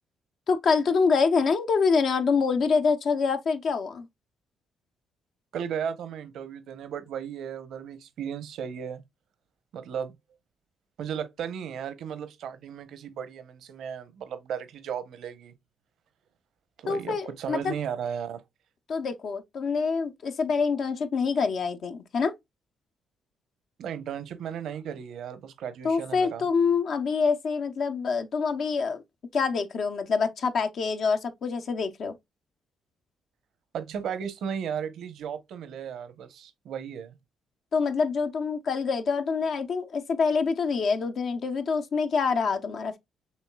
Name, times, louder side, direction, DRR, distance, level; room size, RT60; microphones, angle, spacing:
voice 1, 0.5-4.1 16.9-17.8 18.9-22.3 25.8-29.0 29.3-32.1 37.7-43.0, left 5 dB, 60° left, 0.6 m, -26 dB
voice 2, 5.5-9.0 9.7-10.1 11.0-15.5 16.8-18.4 23.8-26.5 33.7-37.2, right 8 dB, 75° right, 0.8 m, -35 dB
6.3 x 3.0 x 2.2 m
cardioid pair, 90°, 0 cm